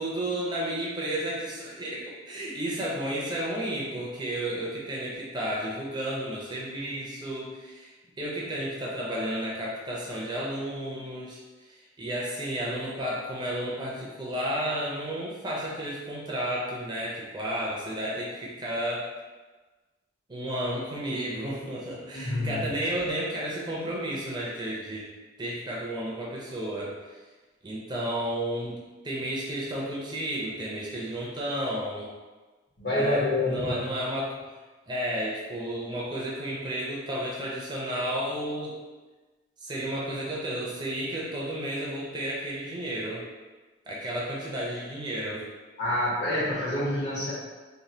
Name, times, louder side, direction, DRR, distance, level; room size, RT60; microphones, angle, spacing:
voice 1, 0.0-19.1 20.3-25.1 25.4-26.9 27.6-28.8 29.0-32.1 32.9-33.2 33.5-34.4 34.9-38.8 39.6-43.2 43.9-45.4, right 1 dB, 25° right, -5 dB, 0.5 m, -32 dB
voice 2, 22.1-22.8 32.8-33.8 45.8-47.3, left 1 dB, 60° left, -8 dB, 1.2 m, -27 dB
3.1 x 2.2 x 2.7 m, 1.3 s
head